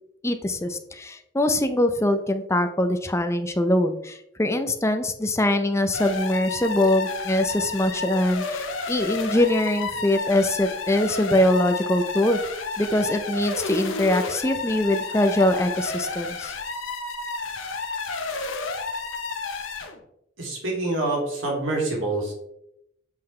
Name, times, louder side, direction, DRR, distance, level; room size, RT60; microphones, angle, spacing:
voice 1, 0.2-12.4 12.8-16.5, left 1 dB, 15° left, 7 dB, 0.6 m, -23 dB
sound 1, 5.9-20.0, left 4 dB, 85° left, 1.0 m, -31 dB
voice 2, 20.4-22.3, right 2 dB, 85° right, -2 dB, 2.8 m, -26 dB
7.3 x 5.8 x 3.2 m, 0.78 s
head